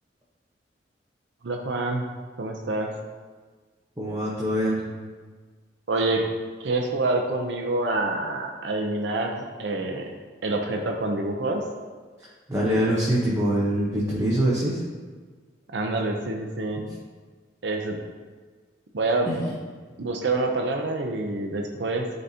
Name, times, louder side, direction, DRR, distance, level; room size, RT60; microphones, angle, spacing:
voice 1, 1.4-2.0 2.4-2.9 5.9-6.2 6.6-10.1 10.4-11.6 15.7-16.8 17.6-18.0 18.9-19.3 20.0-22.1, right 2 dB, 75° right, 2 dB, 0.6 m, -26 dB
voice 2, 4.0-4.8 12.5-14.8 19.3-19.5, right 1 dB, 15° right, -7 dB, 0.9 m, -24 dB
11.0 x 4.0 x 2.8 m, 1.5 s
head